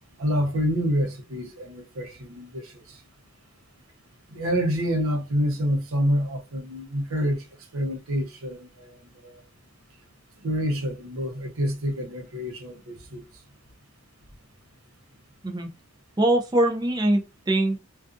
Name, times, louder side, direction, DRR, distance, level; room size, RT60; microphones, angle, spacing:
voice 1, 0.2-3.0 4.3-7.4 7.7-9.4 10.4-13.2, equal, 80° right, 0.7 m, -27 dB
voice 2, 16.2-17.8, right 1 dB, 20° right, 0.5 m, -22 dB
2.4 x 2.4 x 2.5 m
head